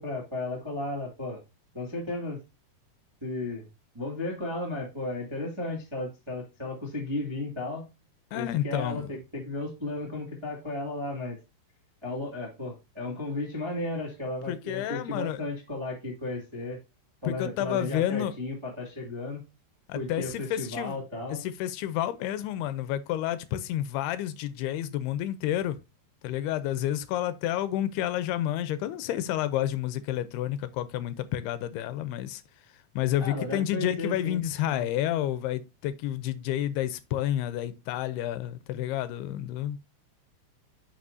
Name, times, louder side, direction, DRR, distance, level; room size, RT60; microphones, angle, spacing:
voice 1, 0.0-1.4 1.7-2.4 3.2-3.7 3.9-7.9 8.3-11.4 12.0-16.8 17.2-19.4 19.9-21.4 33.2-34.4 34.7-34.8, left 2 dB, 20° right, 0.8 m, -34 dB
voice 2, 8.3-9.1 14.5-15.4 17.3-18.3 19.9-21.0 21.3-25.8 26.2-32.4 33.0-39.8, left 12 dB, 85° left, 2.6 m, -30 dB
9.6 x 6.2 x 2.7 m
omnidirectional pair, 4.8 m